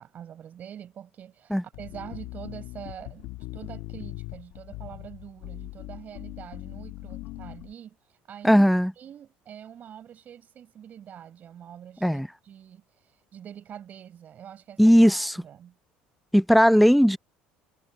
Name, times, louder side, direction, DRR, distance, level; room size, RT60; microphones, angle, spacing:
voice 1, 0.0-8.0 8.3-8.7 9.0-12.8 13.3-15.8, right 9 dB, 45° right, 7.4 m, -44 dB
sound 1, 1.7-7.7, left 19 dB, 75° left, 1.3 m, -40 dB
voice 2, 8.4-8.9 12.0-12.3 14.8-15.4 16.3-17.2, equal, ahead, 0.6 m, -18 dB
supercardioid pair, 95°, 4 cm